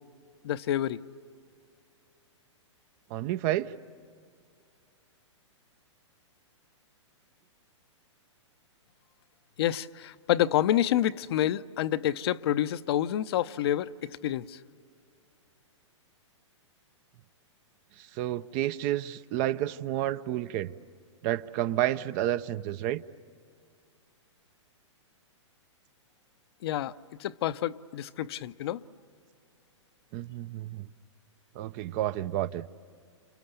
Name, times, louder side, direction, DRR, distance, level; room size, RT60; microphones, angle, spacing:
voice 1, 0.4-1.0 9.6-13.9 14.2-14.4 26.6-26.9 27.2-28.8, left 12 dB, 55° left, 0.7 m, -28 dB
voice 2, 3.1-3.7 18.2-20.7 21.2-23.0 30.1-30.9 31.6-32.6, right 13 dB, 35° right, 0.7 m, -30 dB
29.0 x 29.0 x 6.9 m
hypercardioid pair, 125°, 16 cm